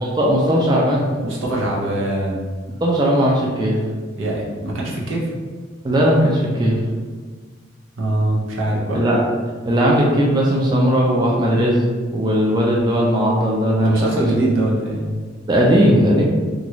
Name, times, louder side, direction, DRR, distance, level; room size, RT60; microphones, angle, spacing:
voice 1, 0.0-1.0 2.8-3.8 5.8-6.8 8.9-9.2 9.7-11.8 12.1-14.3 15.5-16.2, equal, 20° right, -3 dB, 0.3 m, -17 dB
voice 2, 1.2-2.4 4.1-5.3 8.0-9.0 13.8-15.1, right 1 dB, 80° right, -3 dB, 0.8 m, -23 dB
3.0 x 2.5 x 3.0 m, 1.5 s
head